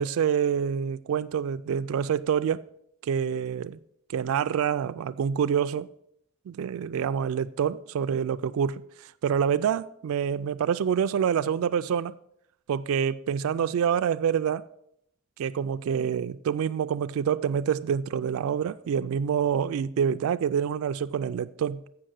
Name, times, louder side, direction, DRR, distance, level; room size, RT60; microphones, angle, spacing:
voice 1, 0.0-2.6 3.0-3.8 4.1-5.9 6.5-12.1 12.7-14.7 15.4-21.8, right 8 dB, 65° right, 0.3 m, -27 dB
7.7 x 5.9 x 6.3 m
head